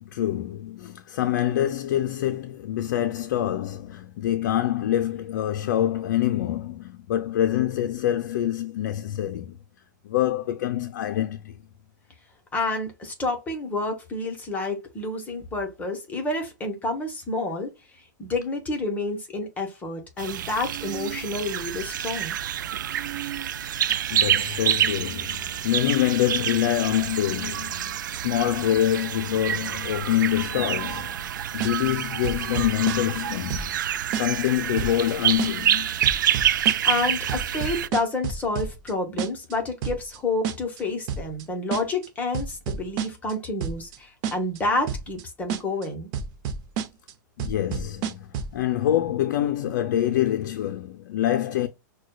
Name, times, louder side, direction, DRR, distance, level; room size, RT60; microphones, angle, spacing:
voice 1, 0.0-9.6 10.0-11.5 23.9-33.7 34.1-35.9 47.4-51.7, left 12 dB, 60° left, 0.5 m, -26 dB
voice 2, 12.5-17.7 18.2-22.4 36.3-36.5 36.8-46.1, left 2 dB, 15° left, 1.0 m, -29 dB
sound 1, 20.2-37.9, right 10 dB, 80° right, 0.4 m, -27 dB
sound 2, 31.6-32.0 32.2-33.2 33.5-33.9 34.1-34.5 34.8-35.1 35.4-35.7 36.0-37.0 37.3-38.9 39.2-39.5 39.8-40.2 40.4-40.8 41.1-41.4 41.7-42.1 42.3-43.3 43.6-44.0 44.2-44.6 44.9-45.2 45.5-45.9 46.1-47.1 47.4-48.6, right 6 dB, 40° right, 0.7 m, -30 dB
6.1 x 2.2 x 2.3 m
hypercardioid pair, 135°, 10 cm